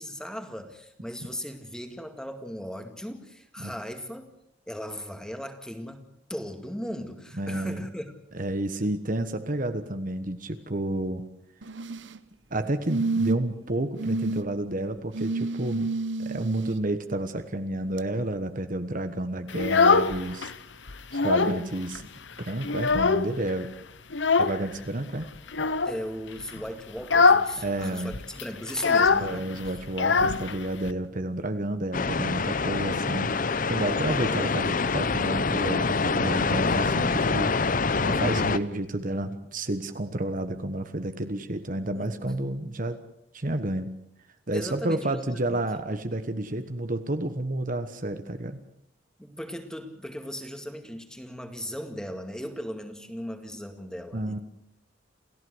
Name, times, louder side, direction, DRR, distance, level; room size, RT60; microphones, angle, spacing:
voice 1, 0.0-4.3 4.7-8.1 25.9-29.5 37.1-37.5 41.9-42.2 44.5-45.2 45.5-45.6 49.2-54.4, equal, 5° left, 7 dB, 2.2 m, -37 dB
voice 2, 7.4-7.8 8.3-11.3 12.5-15.9 16.2-20.5 21.1-22.1 22.4-23.7 24.4-25.3 27.6-28.2 29.2-37.5 38.0-43.0 43.3-43.9 44.5-48.6 54.1-54.4, right 1 dB, 45° right, 9 dB, 1.3 m, -30 dB
sound 1, 11.6-12.2 12.9-13.6 14.0-14.4 15.1-16.7 18.0-18.1, right 3 dB, 75° right, 1.0 m, -29 dB
Child speech kid speaking, 19.5-20.5 20.9-21.7 21.9-22.0 22.4-23.5 24.1-24.6 25.5-26.0 26.4-26.6 27.0-27.5 27.8-27.9 28.1-30.9, left 4 dB, 70° left, 1.0 m, -22 dB
sound 2, 31.9-38.6, left 4 dB, 45° left, 0.8 m, -25 dB
28.5 x 15.5 x 8.0 m, 0.81 s
head